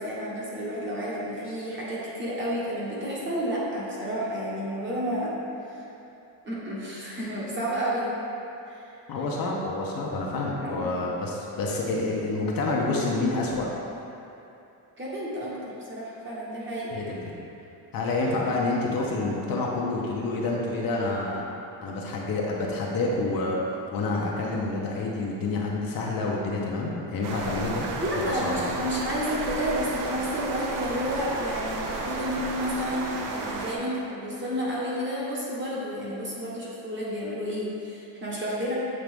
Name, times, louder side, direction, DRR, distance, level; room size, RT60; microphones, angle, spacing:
voice 1, 0.0-5.4 5.7-5.8 6.4-8.1 8.7-8.9 10.6-11.0 15.0-16.9 28.0-38.7, equal, 25° right, -6 dB, 1.2 m, -31 dB
voice 2, 9.1-13.7 16.9-17.2 17.9-21.4 21.8-23.6 23.9-27.9 28.3-28.6, left 2 dB, 50° left, -3 dB, 0.8 m, -28 dB
sound 1, 27.2-33.8, right 3 dB, 45° right, 0.6 m, -32 dB
7.6 x 3.8 x 3.5 m, 2.8 s
cardioid pair, 155°, 47 cm